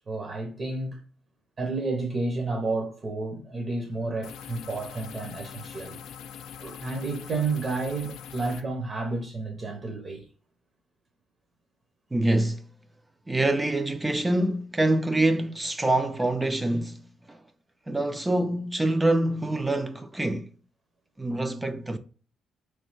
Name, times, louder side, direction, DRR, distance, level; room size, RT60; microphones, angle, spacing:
voice 1, 0.1-1.0 1.6-6.0 6.6-10.3, right 3 dB, 40° right, 0.7 m, -31 dB
sound 1, 4.2-8.6, left 8 dB, 85° left, 0.4 m, -43 dB
voice 2, 12.1-12.7 13.3-17.4 17.9-20.5 21.2-22.0, right 1 dB, 15° right, 0.3 m, -25 dB
3.4 x 3.2 x 3.2 m
cardioid pair, 90°, 0 cm